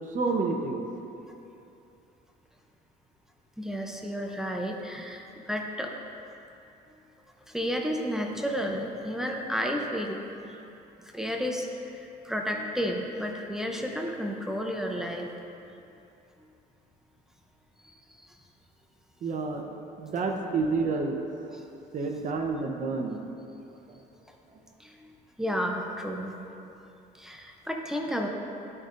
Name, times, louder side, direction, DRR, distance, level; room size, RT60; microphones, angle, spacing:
voice 1, 0.1-0.8 19.2-19.6 20.0-21.6 21.9-23.2, right 4 dB, 50° right, 2 dB, 0.9 m, -29 dB
voice 2, 3.6-5.9 7.5-10.2 10.5-10.6 11.0-11.7 11.9-15.3 17.8-18.3 21.5-21.6 24.8-26.4 27.1-28.3, equal, 5° right, 1 dB, 0.6 m, -32 dB
12.0 x 5.4 x 2.6 m, 2.8 s
cardioid pair, 110°, 17 cm